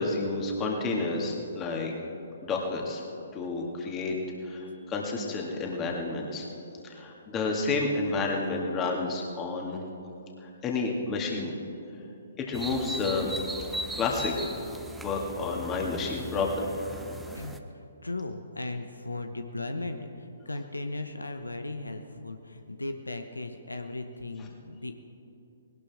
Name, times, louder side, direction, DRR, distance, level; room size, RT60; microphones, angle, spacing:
voice 1, 0.0-1.9 2.4-3.0 3.3-4.2 4.4-6.5 6.8-9.8 10.4-11.5 12.4-13.3 14.0-14.3 15.0-16.7, left 3 dB, 20° left, 0 dB, 2.4 m, -30 dB
sound 1, 12.5-17.6, right 1 dB, 5° right, 0.8 m, -39 dB
voice 2, 17.3-24.9, left 2 dB, 85° left, 7 dB, 1.0 m, -37 dB
20.0 x 18.0 x 3.7 m, 2.7 s
figure-of-eight pair, 130°, 0 cm